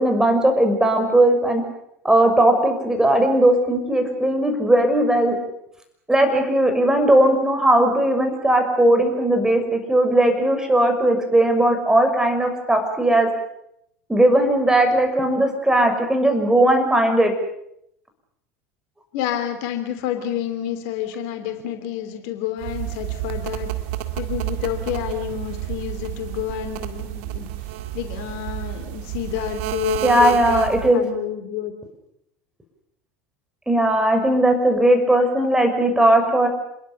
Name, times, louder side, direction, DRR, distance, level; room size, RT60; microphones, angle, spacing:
voice 1, 0.0-1.6 2.0-5.4 6.1-13.3 14.1-17.3 30.0-31.0 33.7-36.5, right 1 dB, 10° right, 5 dB, 6.2 m, -18 dB
voice 2, 19.1-23.7 24.2-27.5 27.9-31.7, left 10 dB, 55° left, 7 dB, 3.0 m, -29 dB
sound 1, 22.6-31.0, right 13 dB, 60° right, 2.1 m, -30 dB
27.5 x 21.5 x 7.0 m, 0.76 s
figure-of-eight pair, 80°, 8 cm